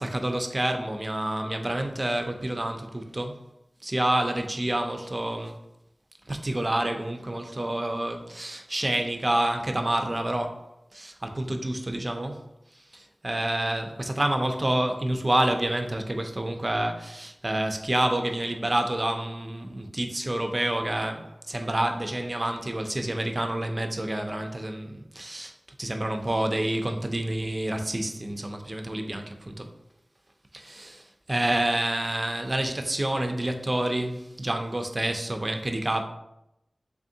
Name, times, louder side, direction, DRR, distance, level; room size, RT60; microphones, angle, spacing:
voice 1, 0.0-3.4 3.8-5.6 6.3-10.6 10.9-12.4 12.7-25.5 25.8-29.7 30.5-36.0, right 1 dB, 35° right, 0.4 m, -28 dB
3.4 x 3.4 x 2.7 m
wide cardioid pair, 60°, 0 cm